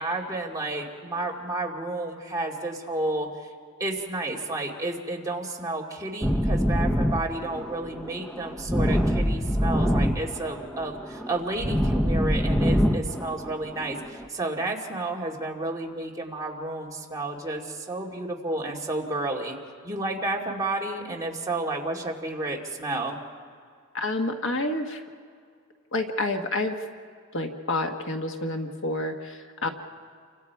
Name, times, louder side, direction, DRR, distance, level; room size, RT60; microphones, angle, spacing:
voice 1, 0.0-3.5 3.8-19.6 19.8-23.2, right 2 dB, 15° right, -2 dB, 2.4 m, -31 dB
sound 1, 6.2-14.3, equal, 5° left, 0.7 m, -25 dB
voice 2, 23.9-25.0 25.9-26.8 27.3-29.7, left 2 dB, 60° left, 4 dB, 1.5 m, -29 dB
29.5 x 25.0 x 4.8 m, 2.2 s
head